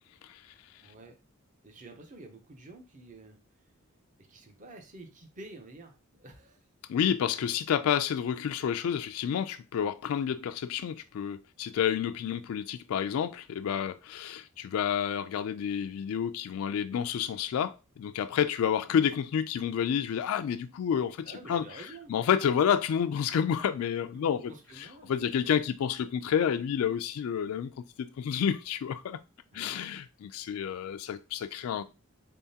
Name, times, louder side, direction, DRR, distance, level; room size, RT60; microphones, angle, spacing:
voice 1, 0.8-1.2 1.6-3.4 4.2-6.6 18.9-19.0 21.2-22.3 24.1-25.5 29.5-29.8, right 2 dB, 35° right, 0.7 m, -49 dB
voice 2, 6.9-21.7 22.1-29.2 29.5-31.8, left 8 dB, 80° left, 0.3 m, -29 dB
3.7 x 3.5 x 2.7 m
head